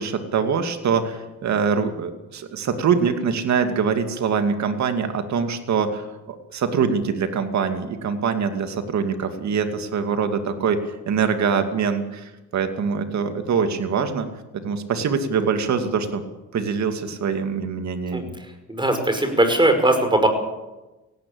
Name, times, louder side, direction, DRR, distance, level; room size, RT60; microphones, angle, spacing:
voice 1, 0.0-10.8 11.1-14.3 14.6-16.2 16.5-18.4, right 6 dB, 65° right, 7 dB, 2.6 m, -24 dB
voice 2, 18.7-20.3, right 1 dB, 15° right, 7 dB, 5.5 m, -19 dB
17.0 x 17.0 x 8.7 m, 1.1 s
cardioid pair, 90°, 30 cm